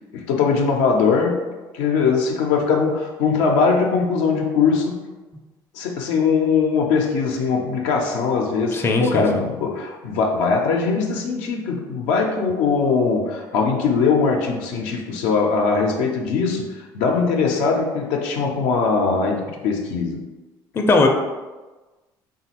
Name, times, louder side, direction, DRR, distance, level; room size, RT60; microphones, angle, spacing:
voice 1, 0.1-1.5 1.7-5.0 5.7-20.2, left 5 dB, 80° left, 1 dB, 0.5 m, -21 dB
voice 2, 8.7-9.2 20.7-21.1, left 3 dB, 25° left, 2 dB, 0.4 m, -18 dB
3.1 x 2.3 x 2.9 m, 1.2 s
supercardioid pair, 75°, 10 cm